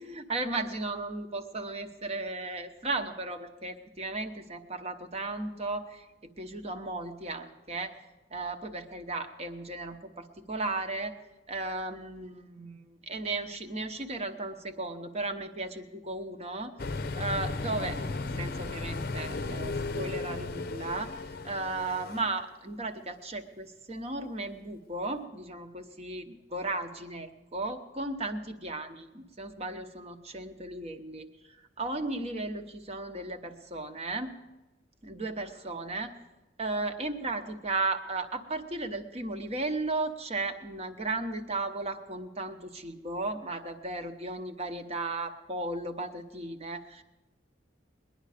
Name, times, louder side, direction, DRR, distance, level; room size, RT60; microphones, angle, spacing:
voice 1, 0.0-6.1 6.4-7.9 8.3-11.1 11.5-16.8 17.2-18.0 18.4-34.4 35.0-36.1 36.6-47.0, right 2 dB, 35° right, 7 dB, 1.0 m, -35 dB
sound 1, 16.8-22.3, left 3 dB, 55° left, 0.6 m, -35 dB
20.5 x 10.5 x 5.0 m, 1.1 s
head